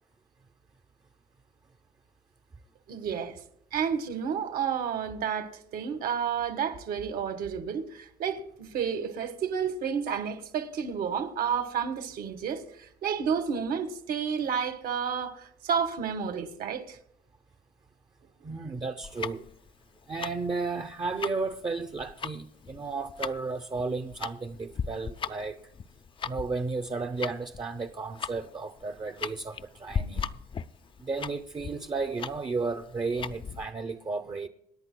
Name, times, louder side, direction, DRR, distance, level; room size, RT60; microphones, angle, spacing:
voice 1, 2.9-3.4 3.7-17.0, right 7 dB, 60° right, 1.6 m, -31 dB
voice 2, 18.4-19.5 20.1-25.7 26.2-30.3 31.0-34.5, right 4 dB, 25° right, 0.8 m, -33 dB
Tick-tock, 19.0-33.7, left 6 dB, 30° left, 0.5 m, -38 dB
26.5 x 10.5 x 2.2 m
cardioid pair, 110°, 17 cm